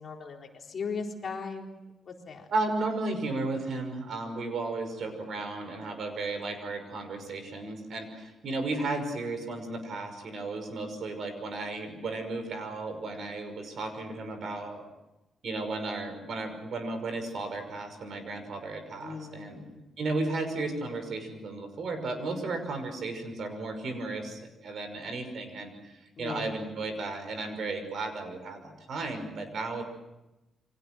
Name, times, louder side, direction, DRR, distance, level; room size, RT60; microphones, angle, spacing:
voice 1, 0.0-1.7 2.1-2.5 19.0-19.8 26.2-26.5, left 5 dB, 40° left, 1 dB, 4.0 m, -38 dB
voice 2, 2.5-14.8 15.4-19.6 20.0-29.8, right 3 dB, 55° right, 7 dB, 5.8 m, -34 dB
29.0 x 25.0 x 6.2 m, 0.98 s
wide cardioid pair, 160°, 0 cm